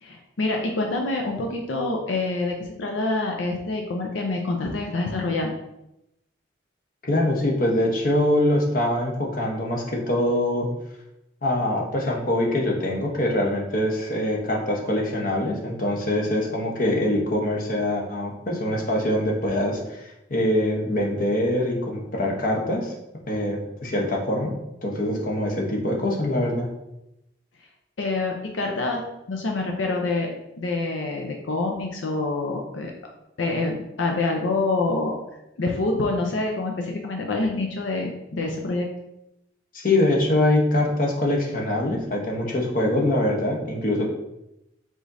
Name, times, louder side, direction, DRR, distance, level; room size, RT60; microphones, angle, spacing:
voice 1, 0.0-5.5 28.0-29.0 29.3-32.9 33.4-35.2 35.6-38.9, left 2 dB, 85° left, 1 dB, 0.6 m, -26 dB
voice 2, 7.0-10.7 11.4-22.9 23.3-24.5 24.8-26.7 39.7-44.1, left 1 dB, 50° left, 0 dB, 0.9 m, -24 dB
4.9 x 3.8 x 2.6 m, 0.87 s
head